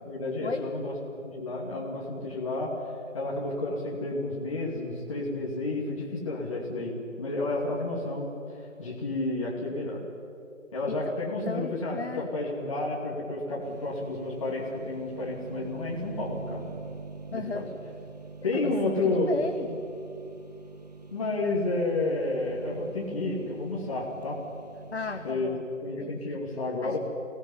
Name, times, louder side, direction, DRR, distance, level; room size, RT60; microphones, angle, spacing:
voice 1, 0.0-2.7 3.1-8.3 8.8-10.0 10.7-16.7 17.3-17.6 18.4-19.3 21.1-24.4 25.2-25.5 25.8-27.0, left 2 dB, 25° left, -4 dB, 2.4 m, -31 dB
voice 2, 11.4-12.3 17.3-17.7 18.5-18.8 19.0-19.8 24.9-25.7 26.0-26.4 26.8-27.0, left 4 dB, 50° left, 5 dB, 1.3 m, -35 dB
sound 1, 13.6-25.3, right 4 dB, 30° right, 0.9 m, -44 dB
24.5 x 17.5 x 9.9 m, 2.9 s
figure-of-eight pair, 165°, 41 cm